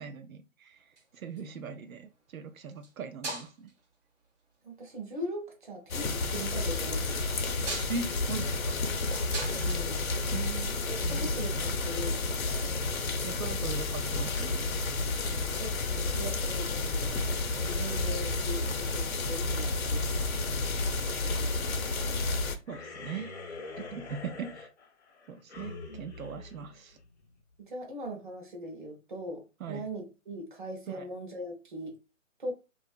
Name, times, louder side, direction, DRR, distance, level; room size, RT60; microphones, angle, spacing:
voice 1, 0.0-3.7 7.9-8.8 10.3-11.7 13.2-14.7 22.7-24.7 25.3-27.0 29.6-29.8 30.9-31.1, right 5 dB, 80° right, 0.5 m, -40 dB
sound 1, 0.8-1.6 2.7-2.9 3.2-3.8 4.8-5.3 7.3-10.8 12.1-12.2, right 2 dB, 55° right, 1.1 m, -41 dB
voice 2, 1.3-1.6 4.6-7.7 9.4-10.1 11.1-12.7 15.2-17.3 17.6-20.2 21.2-22.1 24.3-24.4 27.6-32.0 32.4-32.5, equal, 35° right, 0.8 m, -41 dB
sound 2, 5.9-22.5, left 3 dB, 85° left, 0.8 m, -31 dB
sound 3, 22.7-27.4, left 3 dB, 55° left, 0.5 m, -44 dB
2.9 x 2.4 x 2.4 m
hypercardioid pair, 170°, 41 cm